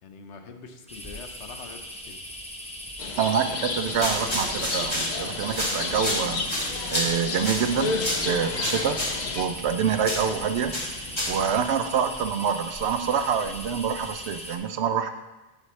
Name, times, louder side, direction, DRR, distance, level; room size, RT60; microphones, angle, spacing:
voice 1, 0.0-2.2, left 5 dB, 75° left, 5 dB, 1.1 m, -44 dB
sound 1, 0.9-14.6, equal, 5° left, 0.6 m, -39 dB
sound 2, 3.0-9.5, left 4 dB, 50° left, 0.6 m, -32 dB
voice 2, 3.2-6.5 6.9-7.9 8.2-9.0 9.4-10.7 11.3-15.1, right 7 dB, 75° right, 9 dB, 0.8 m, -26 dB
sound 3, 3.9-11.5, left 1 dB, 25° left, 1.7 m, -31 dB
12.5 x 4.2 x 3.2 m, 1.1 s
omnidirectional pair, 1.2 m